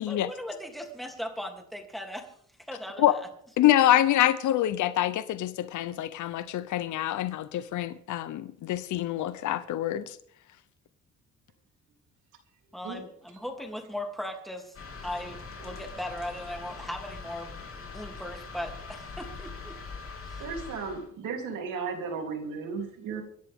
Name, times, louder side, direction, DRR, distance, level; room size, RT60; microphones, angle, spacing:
voice 1, 0.0-2.3 2.7-3.2 12.7-14.8 15.0-19.8 20.2-20.4, left 1 dB, ahead, 3.0 m, -38 dB
voice 2, 3.6-10.2, left 13 dB, 75° left, 0.8 m, -26 dB
sound 1, 14.7-21.1, left 4 dB, 45° left, 3.3 m, -42 dB
voice 3, 20.4-23.2, right 5 dB, 90° right, 3.5 m, -35 dB
25.0 x 11.0 x 3.7 m
cardioid pair, 90°, 30 cm